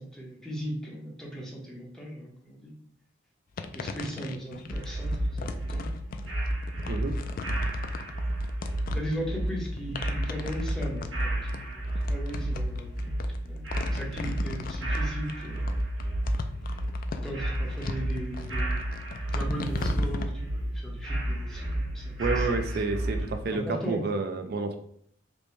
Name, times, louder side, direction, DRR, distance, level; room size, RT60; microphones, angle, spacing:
voice 1, 0.0-2.7 3.7-5.9 8.2-8.3 8.9-13.2 13.4-15.9 17.2-18.9 19.3-22.6 23.5-24.0, equal, 5° left, -3 dB, 0.8 m, -38 dB
sound 1, 3.6-20.3, left 4 dB, 45° left, 0.3 m, -39 dB
sound 2, 4.7-23.4, right 1 dB, 80° right, 0.8 m, -31 dB
voice 2, 6.9-7.2 22.2-24.8, right 3 dB, 55° right, 7 dB, 0.4 m, -29 dB
sound 3, 19.5-20.4 20.7-20.8, equal, 80° left, 0.8 m, -39 dB
5.2 x 2.1 x 3.2 m, 0.66 s
head